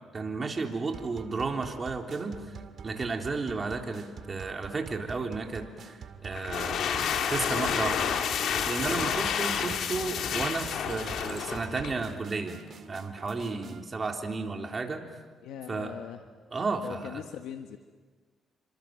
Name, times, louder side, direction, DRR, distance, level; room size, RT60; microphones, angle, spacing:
voice 1, 0.1-2.6 2.8-8.1 8.7-12.6 12.9-15.0 15.7-16.0 16.5-17.2, right 3 dB, 35° right, 3 dB, 3.6 m, -33 dB
sound 1, 0.9-13.9, right 6 dB, 60° right, 2.2 m, -46 dB
sound 2, 6.3-12.0, left 8 dB, 70° left, 2.3 m, -30 dB
voice 2, 15.4-16.2 16.8-17.8, left 9 dB, 90° left, 6 dB, 1.4 m, -40 dB
29.0 x 25.5 x 7.8 m, 1.5 s
cardioid pair, 90°, 0 cm